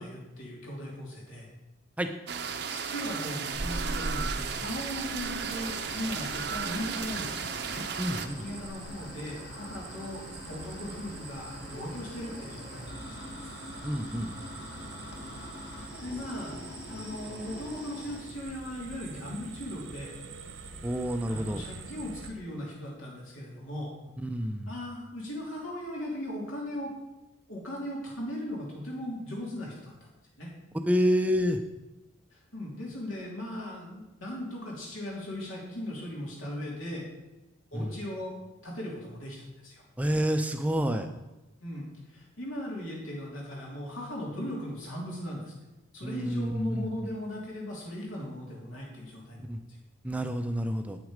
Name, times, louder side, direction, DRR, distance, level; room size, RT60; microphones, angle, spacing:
voice 1, 0.0-1.5 2.7-7.9 8.3-12.9 15.8-16.5 16.9-20.1 21.3-23.9 24.7-26.9 27.5-29.9 30.4-30.5 32.5-37.0 37.7-38.3 38.6-39.8 41.6-45.5 45.9-49.4, left 1 dB, 90° left, -3 dB, 3.0 m, -38 dB
sound 1, 2.3-8.3, right 6 dB, 55° right, 0.6 m, -35 dB
sound 2, 3.5-22.3, right 2 dB, 75° right, 1.0 m, -43 dB
sound 3, 5.4-18.2, left 2 dB, 55° left, 1.4 m, -45 dB
voice 2, 8.0-8.4 13.8-14.3 20.8-21.6 24.2-24.7 30.8-31.6 37.7-37.9 40.0-41.1 46.0-46.9 49.5-49.6 50.0-51.0, equal, 5° right, 7 dB, 0.4 m, -28 dB
8.2 x 6.3 x 5.0 m, 1.0 s
head